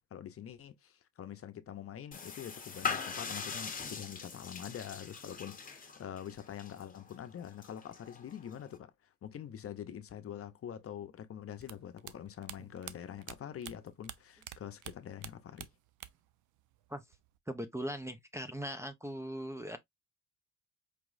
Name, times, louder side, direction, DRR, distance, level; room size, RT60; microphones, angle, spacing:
voice 1, 0.0-15.7, left 9 dB, 50° left, 0.7 m, -45 dB
sound 1, 2.1-8.8, left 6 dB, 25° left, 1.0 m, -42 dB
sound 2, 11.6-14.6 14.8-16.3 16.6-17.4, right 12 dB, 80° right, 0.5 m, -47 dB
voice 2, 17.5-19.8, equal, 10° right, 0.5 m, -39 dB
4.8 x 2.9 x 2.5 m
cardioid pair, 90°, 30 cm